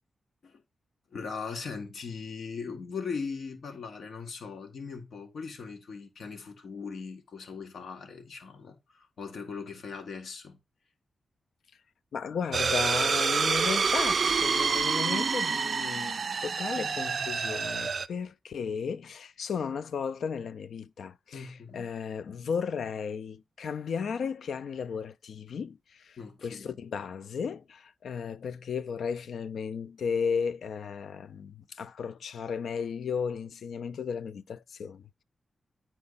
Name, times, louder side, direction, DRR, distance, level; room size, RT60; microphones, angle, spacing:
voice 1, 1.1-10.6 21.3-21.9 26.2-26.8, left 5 dB, 60° left, 1.9 m, -39 dB
voice 2, 12.1-35.2, left 6 dB, 75° left, 0.5 m, -35 dB
sound 1, 12.5-18.1, right 5 dB, 45° right, 0.4 m, -27 dB
9.7 x 4.4 x 4.0 m
wide cardioid pair, 155°, 0 cm